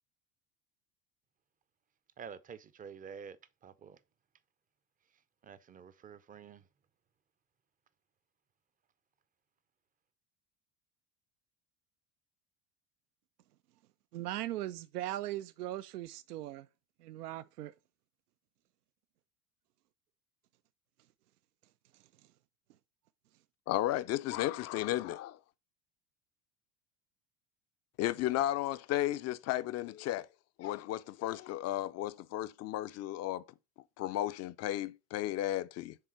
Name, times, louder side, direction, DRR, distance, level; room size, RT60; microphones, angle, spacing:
voice 1, 2.2-3.4 3.6-4.0 5.1-6.7, right 7 dB, 20° right, 0.5 m, -49 dB
voice 2, 14.1-16.7 17.0-17.7, right 14 dB, 80° right, 0.5 m, -39 dB
voice 3, 23.7-25.4 28.0-30.3 30.6-33.5 34.0-36.0, left 14 dB, 35° left, 0.5 m, -34 dB
6.7 x 3.6 x 4.4 m
hypercardioid pair, 75°, 46 cm